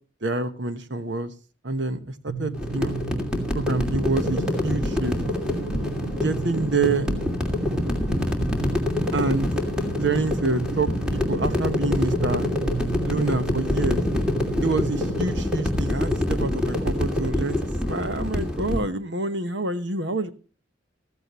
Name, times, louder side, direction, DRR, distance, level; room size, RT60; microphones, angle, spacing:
voice 1, 0.2-1.3 1.6-3.0 3.5-5.2 6.1-7.1 9.1-9.5 10.0-12.5 13.0-14.0 14.6-17.6 17.9-20.3, right 3 dB, 70° right, 10 dB, 1.2 m, -27 dB
sound 1, 2.3-15.3, right 3 dB, 85° right, 3.9 m, -34 dB
sound 2, 2.5-18.8, left 1 dB, 5° right, 2.6 m, -26 dB
15.0 x 15.0 x 3.1 m, 0.35 s
head